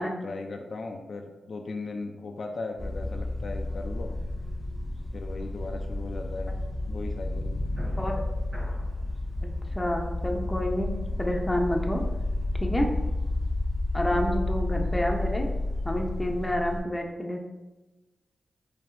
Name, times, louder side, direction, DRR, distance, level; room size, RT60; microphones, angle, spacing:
voice 1, 0.0-4.2 5.1-6.5 6.9-7.6 14.1-14.3, left 3 dB, 65° left, 3 dB, 0.4 m, -37 dB
sound 1, 2.8-16.8, left 2 dB, 60° right, 1.4 m, -31 dB
voice 2, 9.4-12.0 12.6-12.9 13.9-15.5 15.8-17.4, equal, 15° left, 2 dB, 0.8 m, -29 dB
5.3 x 3.2 x 2.6 m, 1.1 s
cardioid pair, 50°, 0 cm